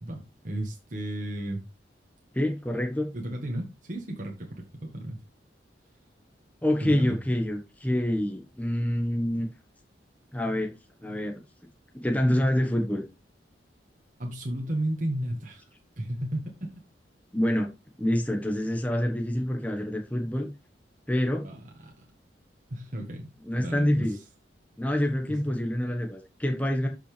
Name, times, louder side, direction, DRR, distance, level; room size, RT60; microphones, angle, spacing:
voice 1, 0.0-1.6 3.1-5.2 6.8-7.1 14.2-15.7 16.0-16.7 21.4-22.1 22.7-23.3 23.6-24.1 25.3-25.5, right 1 dB, 45° right, 1.6 m, -34 dB
voice 2, 2.3-3.1 6.6-9.5 10.3-10.7 11.0-11.4 11.9-13.1 17.3-17.7 18.0-20.5 21.1-21.4 23.4-24.2 24.8-26.9, left 1 dB, 10° left, 1.3 m, -26 dB
12.5 x 5.8 x 3.4 m
head